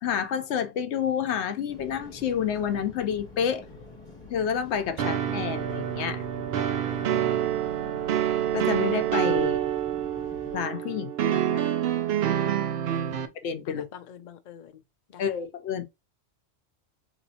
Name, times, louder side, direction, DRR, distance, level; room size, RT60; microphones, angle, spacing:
voice 1, 0.0-3.6 4.3-6.2 8.5-9.6 10.5-11.6 13.4-13.9 15.2-15.8, left 8 dB, 75° left, 0.9 m, -29 dB
sound 1, 1.7-10.6, left 3 dB, 25° left, 1.8 m, -46 dB
sound 2, 5.0-13.3, right 10 dB, 70° right, 0.8 m, -27 dB
voice 2, 6.9-7.3 12.9-13.3 13.7-14.8 15.1-15.2, left 8 dB, 55° left, 0.6 m, -47 dB
4.0 x 3.0 x 2.7 m
omnidirectional pair, 1.2 m